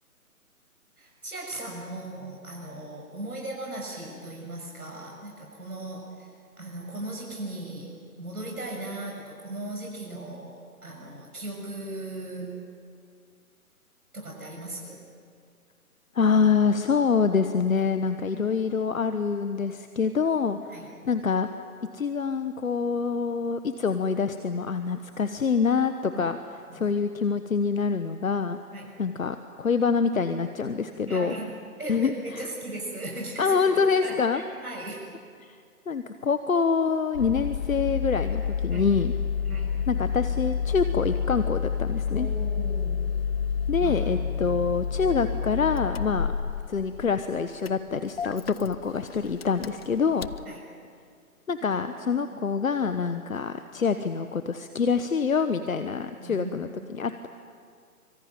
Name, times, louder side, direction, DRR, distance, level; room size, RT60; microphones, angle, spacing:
voice 1, 1.0-6.3 6.6-7.9 8.2-12.6 14.1-15.0 18.3-18.6 20.7-20.9 26.1-26.2 26.7-26.8 28.7-28.9 31.1-31.5 31.8-35.0 38.7-38.9 39.5-39.8 42.1-43.1 43.8-44.0 50.5-50.6 56.2-56.5 56.8-56.9, right 1 dB, 75° right, -1 dB, 6.7 m, -38 dB
voice 2, 16.1-21.5 21.9-26.4 26.7-28.6 29.0-31.3 31.9-32.5 33.4-34.4 35.4-35.6 35.9-39.1 39.9-42.3 43.7-46.3 46.7-50.3 51.5-57.3, left 5 dB, 65° left, 9 dB, 1.3 m, -26 dB
Engine starting, 37.1-50.5, left 7 dB, 45° left, 0.6 m, -29 dB
25.5 x 23.5 x 9.1 m, 2.2 s
figure-of-eight pair, 140°, 44 cm